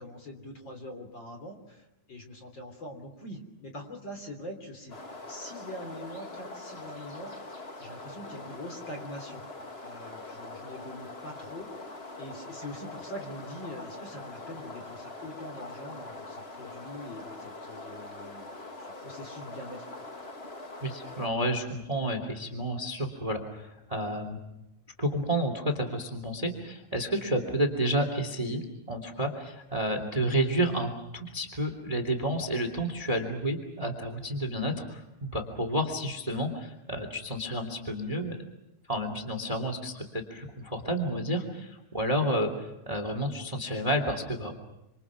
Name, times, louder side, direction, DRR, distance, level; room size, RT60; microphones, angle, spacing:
voice 1, 0.0-5.0 5.3-9.4 9.8-20.1, left 1 dB, 35° left, 4 dB, 3.7 m, -43 dB
sound 1, 4.9-21.3, left 2 dB, 60° left, 0.6 m, -43 dB
voice 2, 20.8-24.4 25.0-28.6 28.9-38.4 38.9-44.5, right 1 dB, 10° right, 6 dB, 2.2 m, -30 dB
27.5 x 27.0 x 6.0 m, 0.87 s
omnidirectional pair, 4.1 m